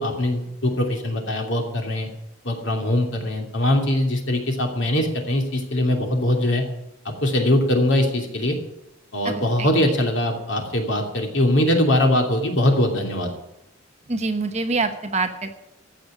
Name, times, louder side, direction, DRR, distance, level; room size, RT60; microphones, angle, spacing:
voice 1, 0.0-2.1 2.4-6.6 7.0-8.6 9.1-13.3, left 1 dB, 60° left, 2 dB, 2.8 m, -22 dB
voice 2, 14.1-15.6, right 3 dB, 30° right, 6 dB, 1.1 m, -25 dB
15.0 x 6.6 x 9.8 m, 0.87 s
head